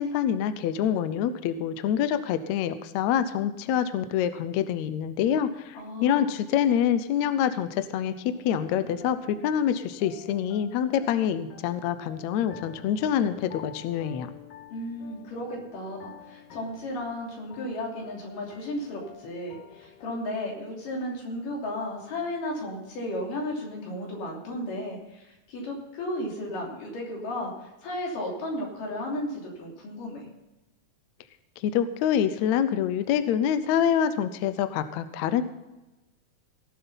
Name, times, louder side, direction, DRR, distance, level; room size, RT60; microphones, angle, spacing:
voice 1, 0.0-14.3 31.6-35.4, left 9 dB, 75° left, 12 dB, 1.8 m, -26 dB
voice 2, 5.7-6.3 14.7-30.3, left 1 dB, 90° left, -1 dB, 4.7 m, -34 dB
sound 1, 8.3-20.4, left 7 dB, 60° left, 1.8 m, -48 dB
18.0 x 7.5 x 5.6 m, 1.0 s
omnidirectional pair, 3.7 m